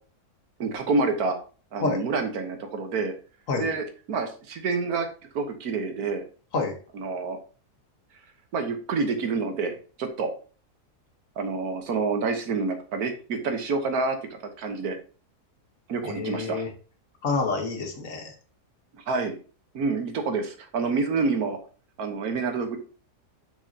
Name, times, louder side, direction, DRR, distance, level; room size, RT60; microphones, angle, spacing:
voice 1, 0.6-1.4 1.7-3.1 3.6-5.1 5.3-6.2 6.9-7.4 8.5-10.3 11.4-15.0 15.9-16.6 19.1-19.4 19.7-21.6 22.0-22.8, right 4 dB, 70° right, 6 dB, 1.5 m, -28 dB
voice 2, 16.0-16.7 17.2-18.3, left 3 dB, 55° left, 3 dB, 1.6 m, -28 dB
6.2 x 6.1 x 2.7 m, 0.38 s
omnidirectional pair, 1.7 m